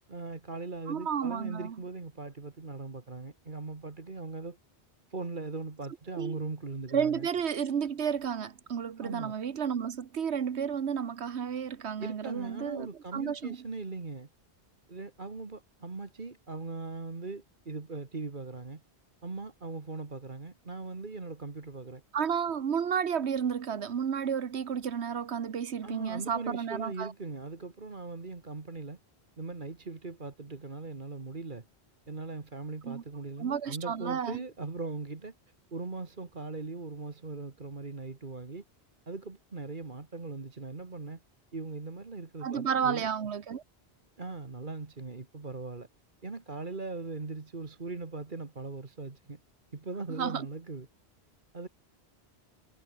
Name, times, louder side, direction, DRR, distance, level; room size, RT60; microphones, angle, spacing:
voice 1, 0.1-4.6 5.1-7.3 9.0-9.3 12.0-14.3 14.9-18.8 19.2-22.0 25.8-29.0 29.4-31.7 32.1-35.3 35.7-38.6 39.1-41.2 41.5-43.0 44.2-45.9 46.2-49.4 49.7-50.9 51.5-51.7, right 3 dB, 50° right, 2.0 m, -40 dB
voice 2, 0.9-1.8 6.2-6.4 6.9-13.6 22.1-27.1 32.8-33.0 33.4-34.4 42.4-43.6 50.1-50.5, right 7 dB, 80° right, 1.3 m, -32 dB
omnidirectional pair, 1.1 m